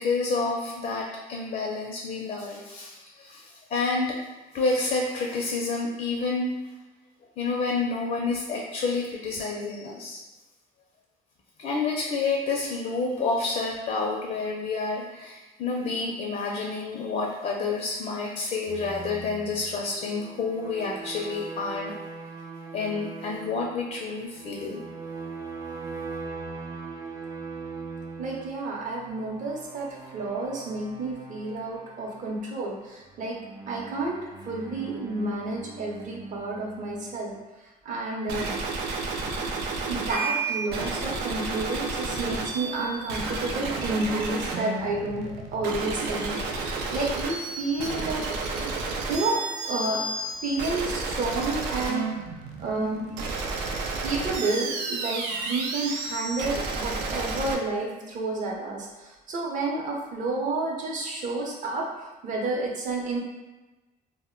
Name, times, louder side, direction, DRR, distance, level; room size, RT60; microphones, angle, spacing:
voice 1, 0.0-4.2 4.5-6.6 7.4-10.2 11.6-21.9 22.7-24.8, left 3 dB, 50° left, -2 dB, 0.4 m, -29 dB
sound 1, 18.7-37.4, right 4 dB, 20° right, 0.4 m, -41 dB
voice 2, 28.2-33.4 33.7-37.3 37.8-38.5 39.8-48.2 48.5-50.0 50.4-52.2 52.6-53.1 54.0-61.9 62.2-63.2, right 2 dB, 50° right, -1 dB, 0.7 m, -30 dB
sound 2, 38.3-57.5, right 3 dB, 90° right, 0.4 m, -31 dB
2.1 x 2.1 x 3.7 m, 1.2 s
cardioid pair, 110°, 17 cm